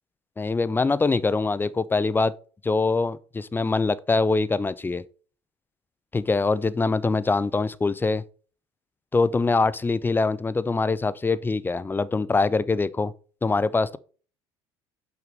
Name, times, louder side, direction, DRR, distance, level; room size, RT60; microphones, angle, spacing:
voice 1, 0.4-2.3 2.6-5.0 6.1-8.2 9.1-13.1 13.4-14.0, left 3 dB, 15° left, 0.5 m, -23 dB
6.0 x 5.8 x 5.3 m
figure-of-eight pair, 65°, 15 cm